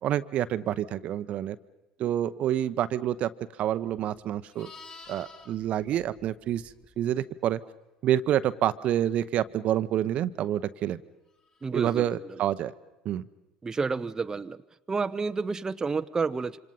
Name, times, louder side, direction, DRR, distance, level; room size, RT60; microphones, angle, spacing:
voice 1, 0.0-1.6 2.0-3.3 3.6-4.7 5.1-6.6 7.0-7.6 8.0-11.0 11.7-12.7 13.0-13.3, right 11 dB, 50° right, 13 dB, 0.9 m, -27 dB
Livestock farm animals working animals, 3.8-7.1 11.5-11.7, left 3 dB, 40° left, 3.5 m, -50 dB
voice 2, 11.6-12.0 13.6-14.6 14.9-16.6, right 4 dB, 25° right, 9 dB, 0.8 m, -30 dB
26.5 x 26.5 x 5.6 m, 1.0 s
figure-of-eight pair, 65°, 3 cm